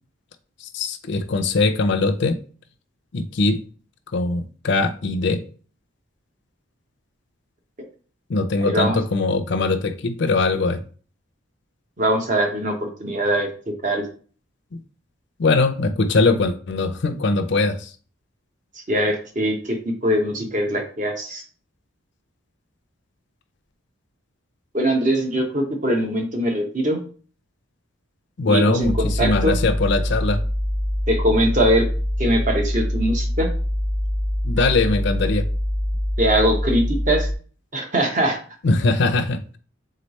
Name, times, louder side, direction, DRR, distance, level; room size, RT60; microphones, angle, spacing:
voice 1, 0.6-2.4 3.1-3.6 4.1-5.4 8.3-10.8 14.7-14.8 15.4-17.9 28.4-30.4 34.4-35.5 38.6-39.6, left 3 dB, 55° left, 0.5 m, -21 dB
voice 2, 8.6-9.0 12.0-13.5 13.8-14.1 18.9-21.4 24.7-27.0 28.5-29.6 31.1-31.9 32.2-33.5 36.2-37.3 37.7-38.4, right 1 dB, 35° right, 0.8 m, -22 dB
sound 1, 28.8-37.3, equal, 15° right, 0.5 m, -24 dB
3.8 x 3.2 x 4.1 m
head